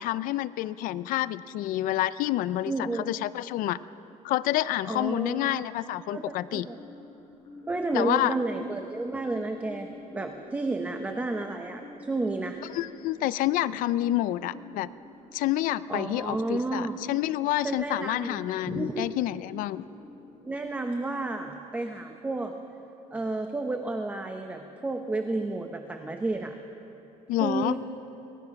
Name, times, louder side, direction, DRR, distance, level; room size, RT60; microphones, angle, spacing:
voice 1, 0.0-3.8 4.2-6.7 7.9-8.3 12.7-14.9 15.3-19.8 27.3-27.8, left 14 dB, 80° left, 16 dB, 0.6 m, -28 dB
voice 2, 2.7-3.1 4.9-5.7 6.1-6.8 7.7-12.6 15.9-17.0 17.6-18.4 18.7-19.1 20.4-22.6 23.1-26.6 27.4-27.8, right 2 dB, 10° right, 5 dB, 0.8 m, -31 dB
sound 1, 6.6-22.6, left 2 dB, 20° left, 5.0 m, -48 dB
24.0 x 19.5 x 5.9 m, 3.0 s
cardioid pair, 175°, 14 cm